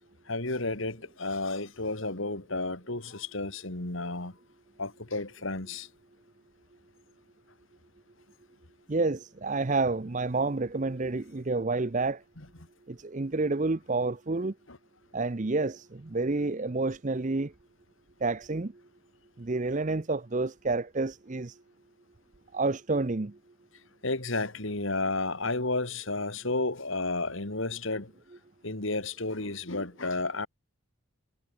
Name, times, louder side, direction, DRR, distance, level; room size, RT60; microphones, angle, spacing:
voice 1, 0.3-4.4 4.8-5.9 12.4-12.5 14.7-14.8 24.0-28.1 28.6-30.5, left 2 dB, 60° left, 2.6 m, -32 dB
voice 2, 8.9-12.2 12.9-14.5 15.1-17.5 18.2-18.7 19.4-21.6 22.5-23.3, right 3 dB, 35° right, 0.6 m, -29 dB
head